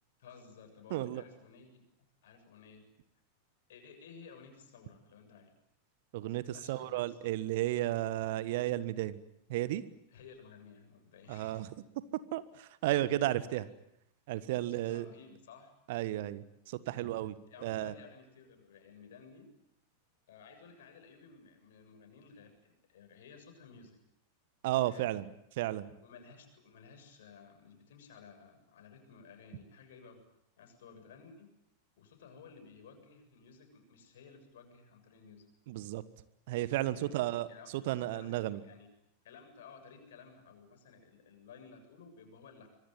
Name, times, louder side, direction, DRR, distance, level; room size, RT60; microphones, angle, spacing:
voice 1, 0.2-1.8 2.2-2.8 3.7-5.5 6.5-7.3 10.1-11.7 13.5-13.7 14.7-15.7 17.5-19.5 20.3-24.0 24.8-25.1 26.0-30.2 30.6-31.5 32.0-35.5 36.9-38.9 39.2-42.7, left 5 dB, 60° left, 6 dB, 7.2 m, -55 dB
voice 2, 0.9-1.2 6.1-9.2 9.5-9.8 11.3-11.7 12.3-13.7 14.3-15.1 15.9-17.3 17.6-17.9 24.6-25.3 25.6-25.9 35.7-36.0 36.5-37.5 37.7-38.6, right 15 dB, 50° right, 16 dB, 1.4 m, -33 dB
25.5 x 23.0 x 9.2 m, 0.77 s
figure-of-eight pair, 90°, 0 cm